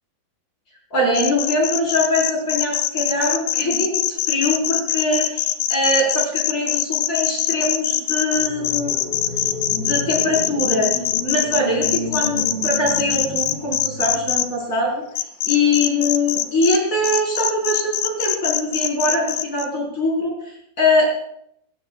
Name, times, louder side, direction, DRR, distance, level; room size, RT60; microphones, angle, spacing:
voice 1, 0.9-9.1 9.7-10.9 11.2-15.0 15.4-21.0, left 1 dB, 20° left, -3 dB, 4.9 m, -22 dB
sound 1, 1.1-14.4 15.2-16.8 17.0-19.6, left 13 dB, 80° left, 2.6 m, -22 dB
sound 2, 8.3-14.5, left 1 dB, 45° left, 7.1 m, -32 dB
18.5 x 17.0 x 2.5 m, 0.74 s
omnidirectional pair, 5.2 m